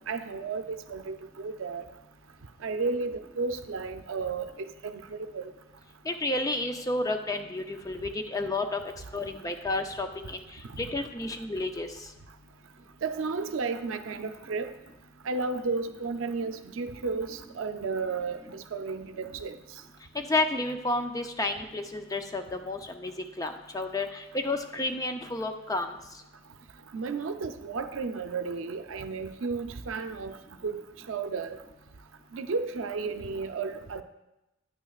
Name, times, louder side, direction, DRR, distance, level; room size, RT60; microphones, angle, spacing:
voice 1, 0.1-1.8 2.6-4.4 4.8-4.9 5.3-5.5 10.8-10.9 13.0-14.7 15.3-19.5 26.9-30.4 30.6-30.8 31.1-31.6 32.3-34.0, right 4 dB, 85° right, 9 dB, 0.5 m, -33 dB
voice 2, 6.0-11.9 20.1-25.9, left 2 dB, 20° left, 6 dB, 0.5 m, -31 dB
8.9 x 8.9 x 2.4 m, 0.92 s
head